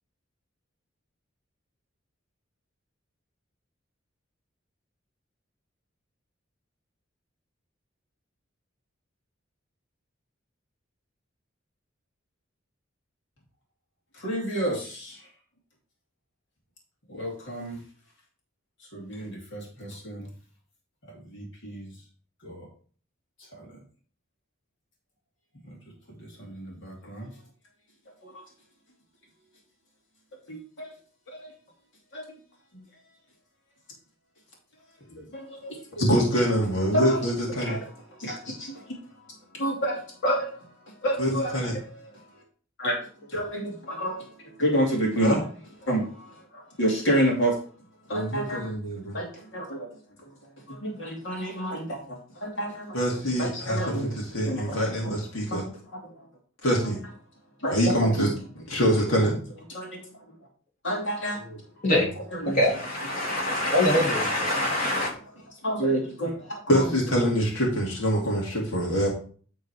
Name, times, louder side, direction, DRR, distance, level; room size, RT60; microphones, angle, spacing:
voice 1, 14.2-15.2 17.1-17.8 18.9-20.3 21.3-21.9 22.4-22.7 23.5-23.7 26.4-27.3 28.2-28.4 30.5-30.9 31.3-31.5 32.1-32.2 32.7-32.8 35.3-36.1 36.9-37.2 37.6-37.8 38.2-39.0 39.5-40.5 41.0-42.1 42.8-42.9 43.3-44.3 44.6-45.4 45.8-47.6 48.1-48.7 49.1-49.9 50.7-53.0 53.4-54.1 54.4-55.2 55.5-56.1 57.6-58.3 59.7-60.0 60.8-61.4 61.9-62.0 62.4-62.6 63.2-63.3 65.6-66.9, right 1 dB, 65° left, 2.7 m, -30 dB
voice 2, 36.0-37.8 41.2-41.7 45.2-45.4 48.1-49.2 52.9-55.6 56.6-57.0 57.7-59.4 61.5-61.6 66.7-69.1, equal, 80° left, 2.2 m, -25 dB
voice 3, 62.4-65.1, left 1 dB, 45° left, 3.3 m, -24 dB
11.0 x 3.9 x 4.7 m
head